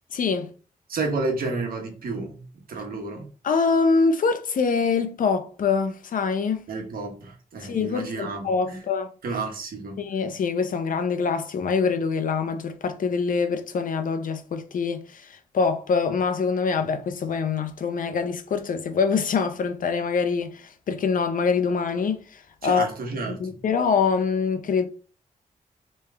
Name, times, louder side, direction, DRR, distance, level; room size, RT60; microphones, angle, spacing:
voice 1, 0.1-0.5 3.4-6.7 7.6-9.1 10.0-22.9 23.4-24.9, left 5 dB, 65° left, 0.6 m, -24 dB
voice 2, 0.9-3.3 6.7-8.8 9.2-10.0 22.6-23.6, right 3 dB, 85° right, 1.1 m, -31 dB
3.5 x 3.2 x 3.3 m
wide cardioid pair, 120°, 15 cm